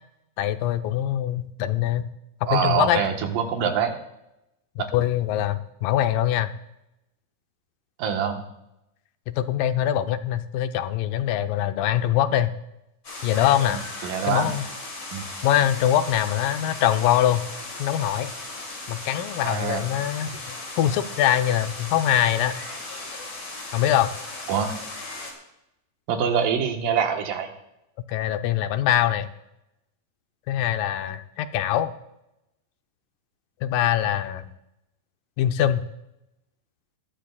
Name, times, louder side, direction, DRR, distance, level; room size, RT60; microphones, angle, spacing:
voice 1, 0.4-2.1 2.4-3.0 4.9-6.5 9.3-12.5 13.2-13.8 14.3-14.7 15.4-17.4 17.8-18.3 18.9-22.6 23.7-24.1 28.1-29.3 30.5-31.9 33.6-34.5 35.4-35.8, left 11 dB, 90° left, 9 dB, 2.4 m, -23 dB
voice 2, 2.5-4.0 4.8-4.9 8.0-8.4 13.7-14.5 15.1-15.2 19.4-19.8 24.5-24.8 26.1-27.5, right 7 dB, 85° right, 4 dB, 2.9 m, -25 dB
sound 1, 13.0-25.3, left 2 dB, 35° left, 2.9 m, -37 dB
20.5 x 12.5 x 2.3 m, 0.88 s
omnidirectional pair, 3.8 m